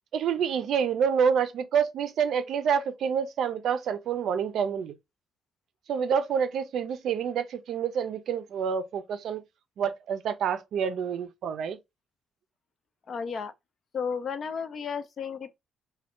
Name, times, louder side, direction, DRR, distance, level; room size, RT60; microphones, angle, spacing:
voice 1, 0.1-5.0 5.9-9.4 9.8-11.8, right 7 dB, 70° right, 0.4 m, -27 dB
voice 2, 13.1-13.5 13.9-15.6, left 6 dB, 55° left, 0.4 m, -33 dB
2.4 x 2.2 x 3.5 m
cardioid pair, 90°, 0 cm